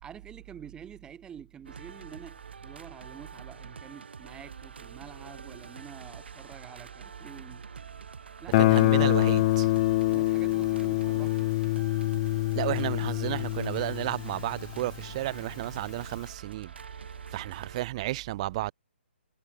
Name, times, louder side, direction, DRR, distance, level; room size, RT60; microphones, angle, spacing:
voice 1, 0.0-7.6 8.4-8.9 9.3-9.7 10.1-11.6, right 8 dB, 10° right, 2.5 m, -48 dB
sound 1, 1.6-17.8, right 5 dB, 65° right, 2.0 m, -46 dB
Guitar, 8.5-15.2, left 19 dB, 30° left, 0.9 m, -25 dB
voice 2, 8.6-9.7 12.5-16.7 17.3-18.7, right 16 dB, 35° right, 0.4 m, -32 dB
figure-of-eight pair, 135°, 6 cm